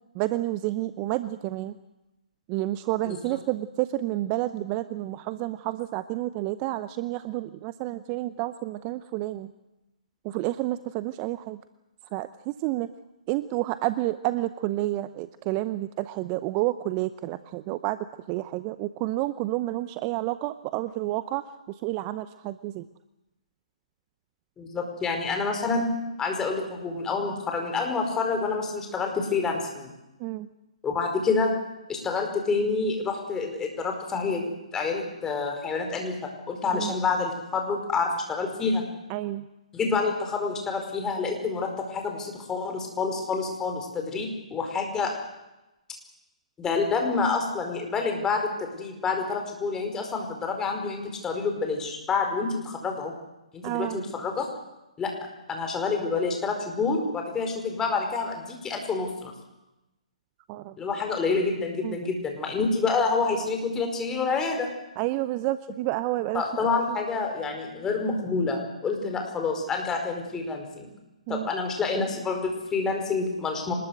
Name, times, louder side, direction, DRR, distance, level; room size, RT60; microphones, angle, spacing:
voice 1, 0.1-1.8 2.5-9.5 10.2-11.6 12.1-12.9 13.3-18.0 18.3-22.9 30.2-30.5 36.7-36.9 39.1-39.5 53.6-54.0 60.5-60.8 61.8-62.0 65.0-66.5 66.9-67.0 71.3-71.5, right 16 dB, 25° right, 13 dB, 0.8 m, -30 dB
voice 2, 24.6-25.9 26.2-29.9 30.8-31.5 31.9-38.8 39.7-45.1 46.6-53.1 53.5-54.5 55.0-55.1 55.5-59.3 60.8-64.7 66.3-70.9 71.3-73.7, left 4 dB, 15° left, 3 dB, 4.8 m, -28 dB
25.0 x 20.5 x 8.0 m, 0.97 s
figure-of-eight pair, 135°, 4 cm